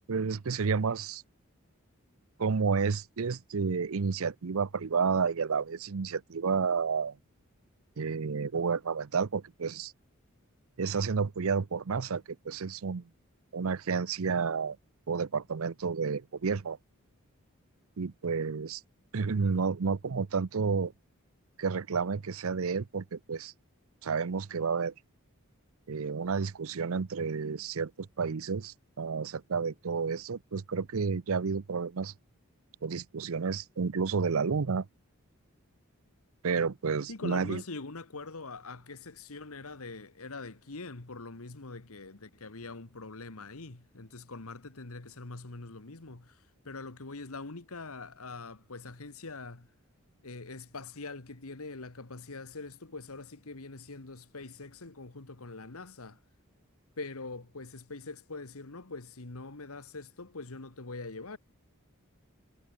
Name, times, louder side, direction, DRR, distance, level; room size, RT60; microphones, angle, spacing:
voice 1, 0.1-1.2 2.4-7.2 8.0-9.9 10.8-13.0 13.5-14.8 15.1-16.8 18.0-18.8 19.1-20.9 21.6-23.5 24.0-24.9 25.9-32.1 32.8-34.9 36.4-37.6, right 5 dB, 70° right, 0.6 m, -31 dB
voice 2, 37.1-49.7 50.2-56.2 57.0-61.4, left 3 dB, 75° left, 1.6 m, -43 dB
head